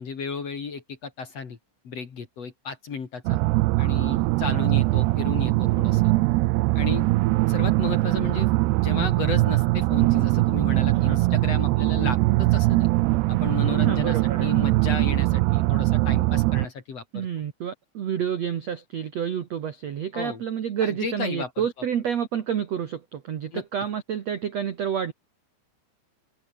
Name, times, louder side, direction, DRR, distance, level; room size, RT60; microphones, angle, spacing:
voice 1, 0.0-1.6 1.8-3.4 3.8-6.1 6.7-7.1 7.5-8.5 8.8-12.9 13.3-17.3 20.1-20.4 20.8-21.5 23.5-23.6, left 5 dB, 40° left, 2.9 m, -34 dB
sound 1, 3.3-16.7, right 20 dB, 90° right, 2.4 m, -21 dB
voice 2, 13.7-14.5 17.1-25.1, right 8 dB, 65° right, 1.6 m, -29 dB
omnidirectional pair, 5.4 m